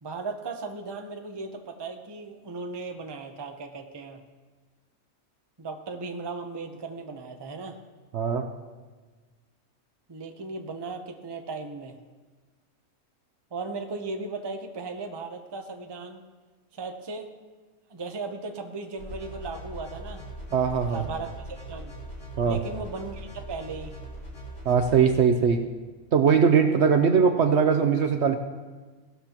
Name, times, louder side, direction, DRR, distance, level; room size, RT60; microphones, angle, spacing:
voice 1, 0.0-4.2 5.6-7.8 10.1-12.0 13.5-16.2 16.7-17.3 17.9-20.2 20.9-21.9 22.5-24.0, right 3 dB, 25° right, 5 dB, 0.6 m, -37 dB
voice 2, 8.1-8.5 20.5-21.0 22.4-22.6 24.7-25.7 26.1-28.4, right 6 dB, 60° right, 6 dB, 0.8 m, -21 dB
sound 1, 19.0-25.0, right 1 dB, 85° left, 4.1 m, -41 dB
17.0 x 12.5 x 2.9 m, 1.3 s
omnidirectional pair, 1.5 m